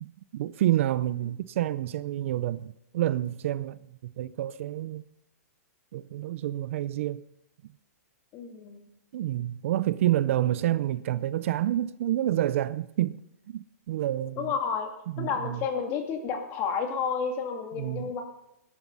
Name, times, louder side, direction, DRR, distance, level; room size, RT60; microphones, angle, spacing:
voice 1, 0.0-5.0 5.9-7.2 9.1-13.2 13.5-14.5 15.1-15.6 17.8-18.1, right 13 dB, 50° right, 0.5 m, -28 dB
voice 2, 8.3-8.9 14.4-14.9 15.2-18.2, left 6 dB, 30° left, 2.5 m, -31 dB
19.5 x 11.0 x 5.5 m
hypercardioid pair, 160°, 9 cm